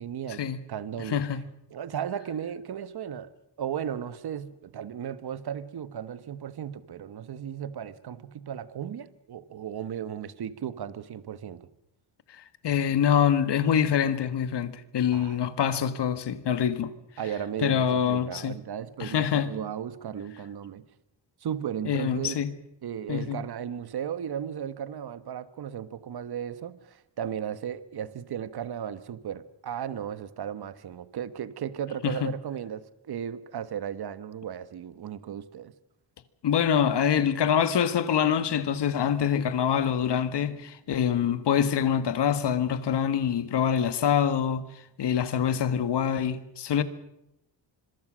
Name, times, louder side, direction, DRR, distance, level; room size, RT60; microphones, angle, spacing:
voice 1, 0.0-0.4 0.7-1.2 1.7-3.3 3.6-11.7 15.1-15.4 17.2-20.8 21.4-22.4 22.8-35.7, right 9 dB, 55° right, 1.4 m, -35 dB
voice 2, 1.1-1.4 12.3-16.9 17.6-18.6 19.0-19.5 21.9-22.5 23.1-23.4 32.0-32.3 36.4-44.6 45.0-46.8, left 8 dB, 65° left, 1.8 m, -25 dB
26.0 x 23.0 x 6.4 m
cardioid pair, 100°, 45 cm